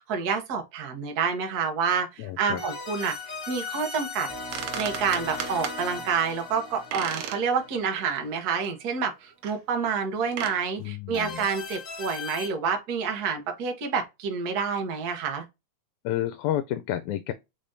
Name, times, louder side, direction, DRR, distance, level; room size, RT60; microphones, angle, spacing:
voice 1, 0.0-3.1 3.5-4.3 4.7-15.4, right 6 dB, 60° right, 1.0 m, -28 dB
voice 2, 2.2-2.6 10.8-11.5 16.0-17.3, left 12 dB, 85° left, 1.9 m, -30 dB
sound 1, 2.6-8.5 11.1-12.5, left 4 dB, 70° left, 0.7 m, -38 dB
sound 2, 4.2-4.3 4.5-5.8 6.9-7.4 7.8-7.9 8.6-8.7 9.4-9.6 10.2-10.6, right 8 dB, 80° right, 1.3 m, -35 dB
5.0 x 3.5 x 2.6 m
omnidirectional pair, 3.3 m